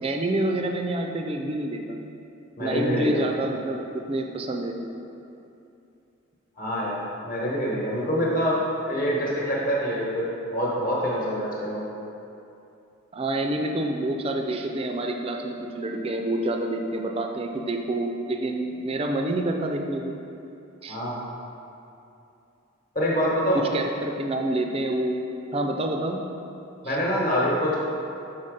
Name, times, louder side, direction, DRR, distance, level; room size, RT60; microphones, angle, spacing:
voice 1, 0.0-2.0 2.6-4.8 13.1-20.2 20.8-21.0 23.5-25.2 25.5-26.2 26.8-27.0, right 1 dB, 25° right, 3 dB, 0.4 m, -28 dB
voice 2, 2.6-3.3 6.6-8.6 8.9-11.8 20.9-21.2 22.9-23.6 26.8-27.7, equal, 40° left, -5 dB, 1.1 m, -25 dB
5.5 x 4.0 x 5.1 m, 2.7 s
head